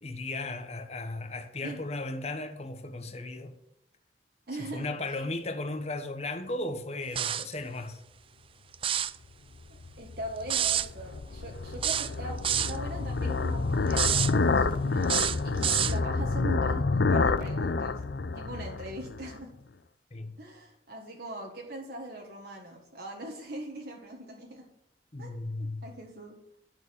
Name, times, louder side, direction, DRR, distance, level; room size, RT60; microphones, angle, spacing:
voice 1, 0.0-3.5 4.6-8.0 20.1-20.4 25.1-25.8, left 2 dB, 35° left, 1.2 m, -36 dB
voice 2, 4.5-4.9 9.7-18.0 18.3-19.5 20.4-24.6 25.2-25.3 25.6-26.4, right 1 dB, 60° right, 1.6 m, -41 dB
sound 1, 7.2-7.5 8.7-9.2 10.5-10.9 11.8-12.8 13.9-14.3 15.0-16.0, right 10 dB, 30° right, 0.4 m, -27 dB
sound 2, 9.8-19.4, left 3 dB, 75° left, 0.6 m, -28 dB
11.0 x 6.8 x 7.0 m
head